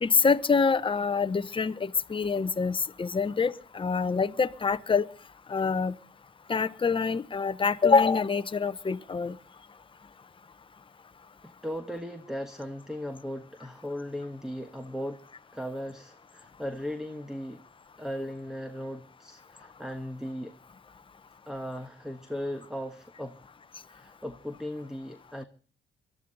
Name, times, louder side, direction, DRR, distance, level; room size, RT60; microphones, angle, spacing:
voice 1, 0.0-5.0 5.5-5.9 6.5-9.3, left 5 dB, 25° left, 0.9 m, -25 dB
voice 2, 11.4-15.2 15.5-17.6 18.0-20.6 21.5-23.4 23.9-25.4, equal, 5° right, 1.3 m, -37 dB
23.0 x 13.0 x 4.0 m
cardioid pair, 90°, 20 cm